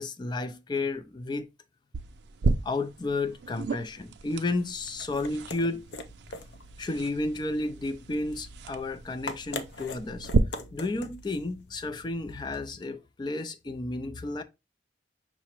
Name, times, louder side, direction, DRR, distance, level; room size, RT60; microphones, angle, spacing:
voice 1, 0.0-1.5 2.6-5.8 6.3-6.4 6.8-10.3 10.7-14.4, left 2 dB, 25° left, 0.3 m, -32 dB
sound 1, 1.9-10.4, right 4 dB, 75° right, 0.4 m, -34 dB
sound 2, 4.6-12.8, left 3 dB, 75° left, 0.5 m, -44 dB
5.7 x 2.0 x 4.3 m
head